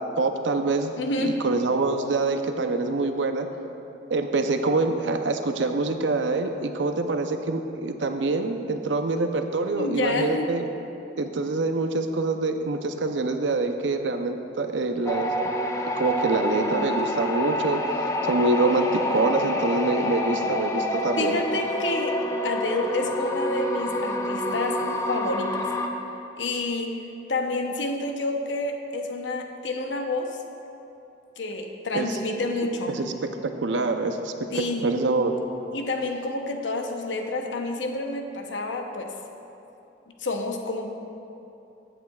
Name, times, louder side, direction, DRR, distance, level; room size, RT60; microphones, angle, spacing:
voice 1, 0.2-3.5 4.1-10.6 11.2-15.3 16.0-17.8 18.2-21.4 31.9-32.2 32.9-33.1 33.4-35.4, right 3 dB, 80° right, 6 dB, 0.6 m, -25 dB
voice 2, 1.0-1.4 9.7-10.5 21.0-24.8 25.1-25.7 26.4-27.0 27.3-30.4 31.4-33.0 34.5-34.8 35.7-39.1 40.2-40.9, left 2 dB, 80° left, 4 dB, 0.8 m, -29 dB
sound 1, 15.0-25.9, left 1 dB, 15° left, 0.5 m, -28 dB
15.0 x 8.1 x 2.4 m, 2.8 s
head